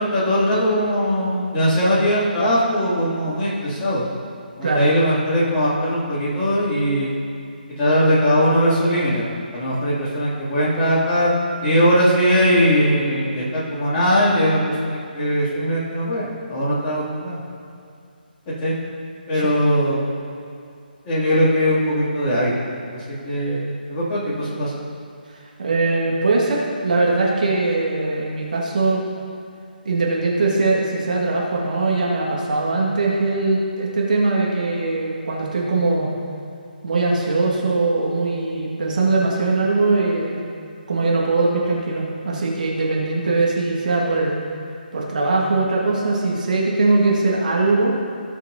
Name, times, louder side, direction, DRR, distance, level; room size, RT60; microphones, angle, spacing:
voice 1, 0.0-4.1 4.6-7.1 7.8-9.3 9.5-11.3 11.6-17.4 18.6-18.7 19.3-20.1 21.0-22.5 22.9-24.7, equal, 20° left, -10 dB, 2.5 m, -20 dB
voice 2, 25.6-29.0 29.8-36.1 36.8-40.4 40.9-44.3 44.9-48.0, right 3 dB, 50° right, -3 dB, 1.7 m, -21 dB
17.5 x 6.3 x 2.7 m, 2.4 s
figure-of-eight pair, 145°, 5 cm